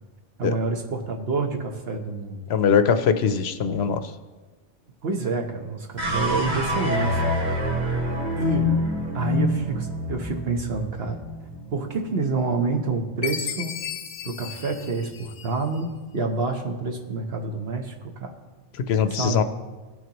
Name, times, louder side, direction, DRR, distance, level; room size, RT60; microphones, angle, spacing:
voice 1, 0.4-2.4 5.0-7.4 8.4-8.7 9.1-11.2 11.7-13.8 14.2-18.3 19.1-19.4, right 4 dB, 60° right, 3 dB, 1.2 m, -28 dB
voice 2, 2.5-4.0 18.9-19.4, left 7 dB, 70° left, 10 dB, 0.8 m, -21 dB
sound 1, 6.0-12.3, left 1 dB, 40° right, 1.5 m, -26 dB
Chime, 13.2-15.8, left 8 dB, 90° left, 1.0 m, -34 dB
17.0 x 6.2 x 3.0 m, 1.3 s
omnidirectional pair, 1.2 m